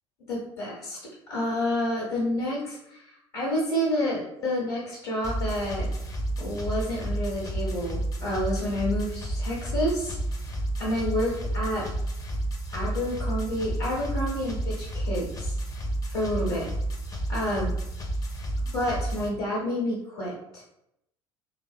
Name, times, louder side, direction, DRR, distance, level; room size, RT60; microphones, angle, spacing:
voice 1, 0.3-1.0 1.3-5.9 6.4-10.2 10.8-11.9 12.7-15.6 16.1-16.7 17.3-17.7 18.7-20.6, left 1 dB, 65° left, -5 dB, 0.9 m, -29 dB
sound 1, 5.2-19.3, right 1 dB, 25° left, 0.5 m, -31 dB
2.5 x 2.1 x 2.3 m, 0.80 s
figure-of-eight pair, 60°, 15 cm